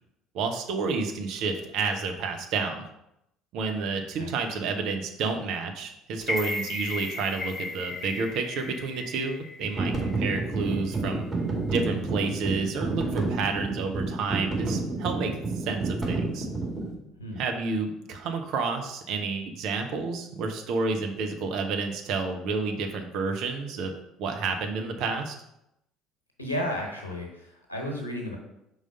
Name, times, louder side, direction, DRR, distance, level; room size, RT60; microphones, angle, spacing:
voice 1, 0.3-2.9 3.5-11.2 11.7-16.5 17.4-23.9 24.2-25.3, right 4 dB, 55° right, 4 dB, 0.7 m, -30 dB
sound 1, 6.2-10.3 10.7-10.8, left 2 dB, 30° left, 0.6 m, -35 dB
sound 2, 9.6-16.9, right 3 dB, 20° right, 2.2 m, -30 dB
voice 2, 26.4-28.4, left 1 dB, 85° left, 0 dB, 1.1 m, -33 dB
4.9 x 3.9 x 5.2 m, 0.83 s
figure-of-eight pair, 55°, 0 cm